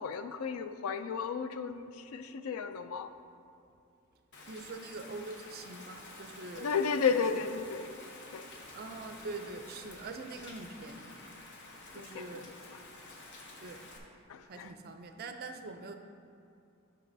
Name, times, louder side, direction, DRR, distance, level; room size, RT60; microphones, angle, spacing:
voice 1, 0.0-3.1 6.6-7.9 8.3-8.5 12.0-12.8 14.3-14.7, left 6 dB, 85° left, 10 dB, 0.4 m, -34 dB
Rain, 4.3-14.0, left 2 dB, 55° left, 0.8 m, -50 dB
voice 2, 4.5-6.7 7.1-7.2 8.7-11.2 11.9-12.5 13.6-13.9 14.4-16.0, right 3 dB, 50° right, 6 dB, 0.4 m, -44 dB
10.5 x 5.5 x 2.6 m, 2.5 s
head